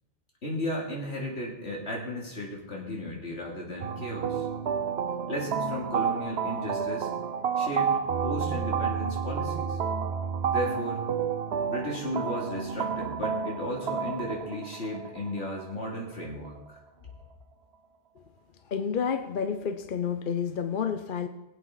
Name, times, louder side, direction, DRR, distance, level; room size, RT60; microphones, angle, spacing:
voice 1, 0.4-4.5 5.3-7.1 7.6-9.8 10.5-11.0 11.7-16.8, equal, 80° left, -2 dB, 3.2 m, -35 dB
sound 1, 3.8-16.8, right 6 dB, 75° right, 1.0 m, -30 dB
voice 2, 18.7-21.3, left 7 dB, 55° left, 9 dB, 0.8 m, -30 dB
22.0 x 8.3 x 4.0 m, 0.99 s
omnidirectional pair, 1.1 m